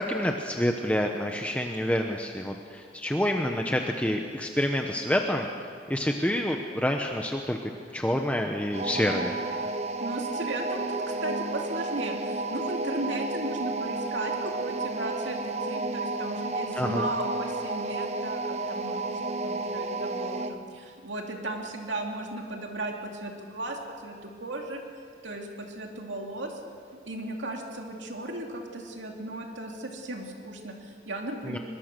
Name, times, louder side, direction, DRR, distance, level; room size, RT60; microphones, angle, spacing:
voice 1, 0.0-5.5 5.9-9.3 16.8-17.0 31.5-31.6, equal, 10° left, 3 dB, 1.0 m, -28 dB
sound 1, 8.7-20.6, right 2 dB, 35° right, 0.9 m, -32 dB
voice 2, 10.0-19.1 19.4-24.8 25.2-26.6 27.1-31.6, right 1 dB, 90° right, 1 dB, 2.7 m, -36 dB
23.5 x 22.0 x 6.8 m, 2.2 s
head